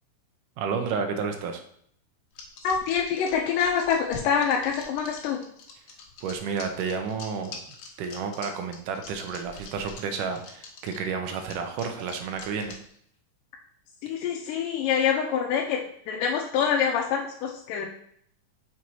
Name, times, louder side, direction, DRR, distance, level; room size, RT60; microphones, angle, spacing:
voice 1, 0.6-1.6 6.2-7.6 8.0-12.8, right 5 dB, 80° right, 5 dB, 2.2 m, -31 dB
sound 1, 2.3-13.0, left 4 dB, 65° left, 2.2 m, -44 dB
voice 2, 2.6-5.4 14.0-17.9, left 7 dB, 85° left, -1 dB, 2.3 m, -25 dB
6.2 x 4.1 x 4.5 m, 0.65 s
omnidirectional pair, 3.8 m